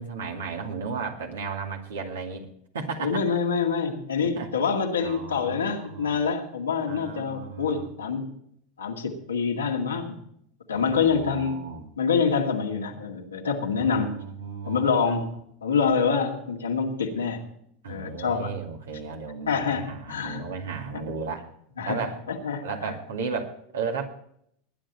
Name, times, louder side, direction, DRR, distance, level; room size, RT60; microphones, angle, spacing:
voice 1, 0.0-2.5 2.7-3.2 4.4-6.2 6.9-7.9 10.7-11.9 13.8-15.2 17.8-21.5 21.9-22.2 22.6-24.1, right 5 dB, 80° right, 2 dB, 2.3 m, -34 dB
voice 2, 3.0-8.3 8.8-10.2 10.7-11.6 12.0-14.1 14.7-15.3 15.6-17.4 17.9-18.5 19.5-20.4 21.8-22.0 22.3-22.6, left 5 dB, 90° left, 0 dB, 2.2 m, -26 dB
20.0 x 10.0 x 4.3 m, 0.70 s
hypercardioid pair, 90°, 0 cm